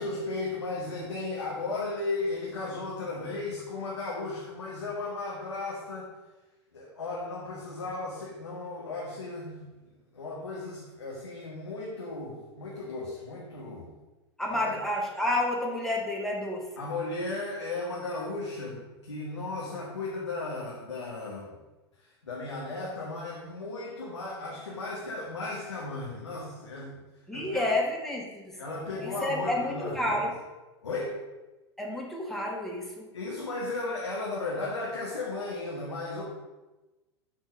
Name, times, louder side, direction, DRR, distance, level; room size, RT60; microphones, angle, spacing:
voice 1, 0.0-6.1 6.7-9.6 10.1-13.9 14.5-14.7 16.8-21.6 22.0-27.0 27.3-27.7 28.6-30.1 30.8-31.2 33.1-36.2, left 2 dB, 80° left, -5 dB, 1.8 m, -35 dB
voice 2, 14.4-16.6 27.3-28.6 29.0-30.3 31.8-33.1, left 1 dB, ahead, -2 dB, 1.7 m, -30 dB
8.9 x 4.5 x 6.1 m, 1.1 s
figure-of-eight pair, 90°, 15 cm